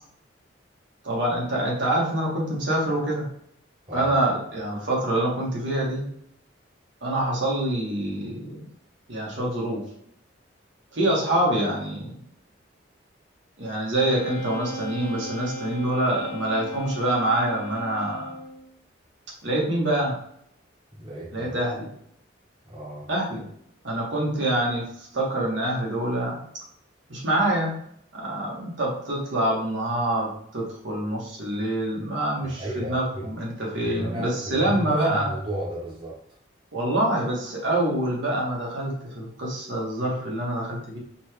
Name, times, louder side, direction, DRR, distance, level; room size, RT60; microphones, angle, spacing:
voice 1, 1.0-3.3 3.9-6.0 7.0-8.7 9.1-9.8 10.9-12.1 13.6-18.3 19.4-20.2 21.3-21.9 23.1-23.4 23.8-24.8 25.1-26.4 27.1-27.7 28.1-35.3 36.7-41.0, right 1 dB, 70° right, -3 dB, 1.3 m, -26 dB
Wind instrument woodwind instrument, 14.1-18.7, left 1 dB, 55° left, 0.6 m, -36 dB
voice 2, 21.0-21.6 22.6-23.1 32.4-33.3 33.8-36.2, right 1 dB, 25° right, -6 dB, 1.1 m, -34 dB
5.3 x 2.4 x 3.3 m, 0.68 s
head